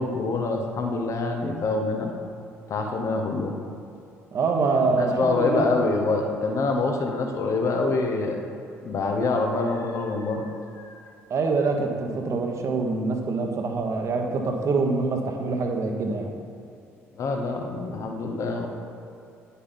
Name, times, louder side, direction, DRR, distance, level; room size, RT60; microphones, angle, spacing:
voice 1, 0.0-2.1 2.7-3.5 4.8-8.4 8.8-10.5 10.8-11.0 17.2-18.7, left 3 dB, 45° left, 3 dB, 1.1 m, -26 dB
voice 2, 4.3-5.7 11.3-16.3, right 4 dB, 45° right, 3 dB, 1.2 m, -25 dB
9.8 x 8.2 x 4.1 m, 2.6 s
figure-of-eight pair, 50°, 7 cm